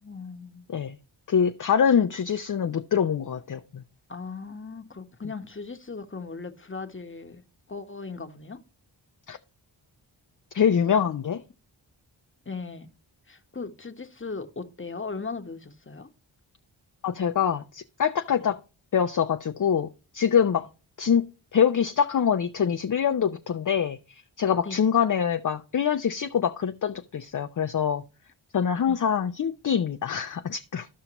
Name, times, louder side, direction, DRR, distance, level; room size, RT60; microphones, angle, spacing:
voice 1, 0.0-0.7 2.0-2.1 4.1-7.4 7.7-8.6 12.4-12.9 13.3-16.1 18.4-18.5 20.5-20.6 24.6-24.8 28.9-29.0, left 4 dB, 25° left, 1.0 m, -38 dB
voice 2, 1.3-3.8 9.3-9.4 10.5-11.4 17.0-18.6 18.9-19.9 20.1-20.7 21.0-21.3 21.5-28.0 28.5-30.9, left 7 dB, 40° left, 0.5 m, -24 dB
13.0 x 5.6 x 2.9 m
cardioid pair, 45°, 48 cm